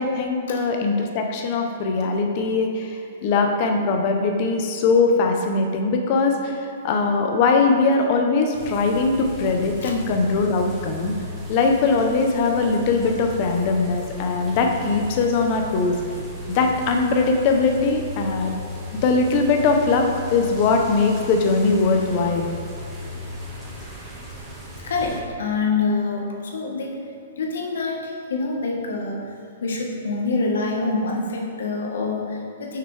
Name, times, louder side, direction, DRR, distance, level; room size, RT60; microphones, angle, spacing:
voice 1, 0.0-11.1 11.5-16.0 16.5-18.5 19.0-22.5, left 4 dB, 35° left, 3 dB, 0.6 m, -21 dB
sound 1, 8.5-25.2, left 2 dB, 5° right, 1.1 m, -35 dB
voice 2, 24.8-27.0 27.4-29.3 29.6-32.8, left 3 dB, 80° left, 0 dB, 1.2 m, -26 dB
6.2 x 5.8 x 3.3 m, 2.5 s
hypercardioid pair, 165°, 0 cm